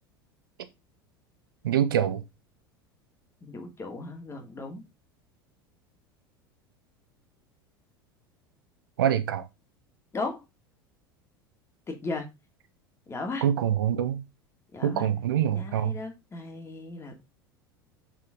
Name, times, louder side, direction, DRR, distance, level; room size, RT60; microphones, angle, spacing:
voice 1, 1.6-2.2 9.0-9.5 13.4-14.2 14.8-16.0, right 10 dB, 65° right, 1.2 m, -25 dB
voice 2, 3.4-4.8 10.1-10.4 11.9-12.3 13.1-13.4 14.7-15.1 15.5-17.2, left 3 dB, 20° left, 2.7 m, -36 dB
7.0 x 6.7 x 3.8 m
figure-of-eight pair, 75°, 12 cm